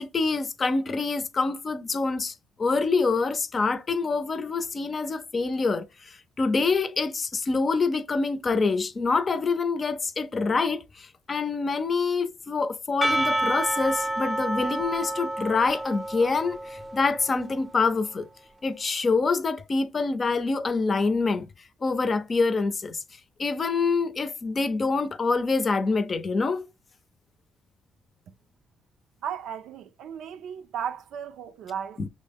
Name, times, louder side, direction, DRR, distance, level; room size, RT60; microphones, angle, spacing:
voice 1, 0.0-2.3 2.6-18.3 18.6-21.5 21.8-23.0 23.4-26.7 32.0-32.1, left 4 dB, 40° left, 0.6 m, -26 dB
Percussion / Church bell, 13.0-17.6, right 1 dB, 5° right, 0.7 m, -29 dB
voice 2, 29.2-32.0, right 8 dB, 80° right, 0.5 m, -35 dB
6.2 x 2.1 x 3.5 m
cardioid pair, 90°, 0 cm